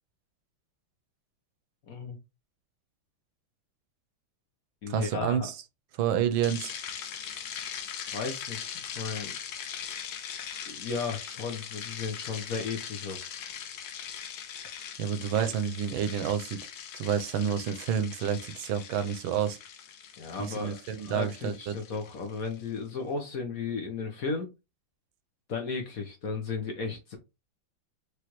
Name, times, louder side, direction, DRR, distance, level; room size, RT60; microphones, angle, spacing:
voice 1, 1.9-2.2 4.8-5.5 8.0-9.3 10.7-13.3 20.2-24.5 25.5-27.2, left 4 dB, 55° left, 1.1 m, -35 dB
voice 2, 4.9-5.5 6.0-6.7 15.0-16.6 16.9-19.6 20.4-21.7, right 8 dB, 80° right, 1.4 m, -29 dB
sound 1, 6.4-22.7, left 8 dB, 70° left, 1.4 m, -41 dB
4.9 x 3.3 x 3.0 m
omnidirectional pair, 2.2 m